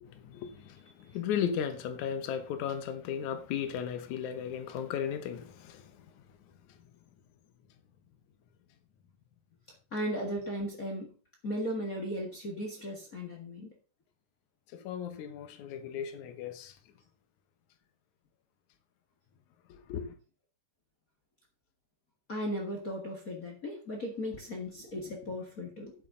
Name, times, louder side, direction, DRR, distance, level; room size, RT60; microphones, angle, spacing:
voice 1, 0.0-5.9 14.7-16.7 19.7-20.1, left 8 dB, 65° left, 2.3 m, -36 dB
voice 2, 9.9-11.1 11.4-13.7 22.3-25.9, equal, 35° left, 1.4 m, -36 dB
9.9 x 8.1 x 3.8 m
omnidirectional pair, 4.0 m